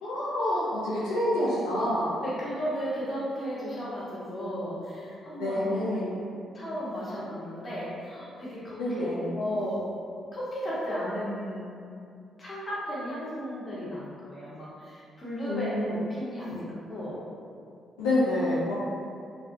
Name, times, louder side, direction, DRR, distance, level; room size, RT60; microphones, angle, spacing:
voice 1, 0.0-2.1 5.4-6.1 8.8-9.2 15.5-15.8 16.5-16.6 18.0-18.7, left 1 dB, 75° left, -9 dB, 0.4 m, -27 dB
voice 2, 2.2-5.8 6.5-9.1 9.3-9.8 10.3-11.7 12.4-17.2, equal, 35° left, -8 dB, 0.9 m, -34 dB
2.4 x 2.1 x 2.6 m, 2.4 s
hypercardioid pair, 45°, 0 cm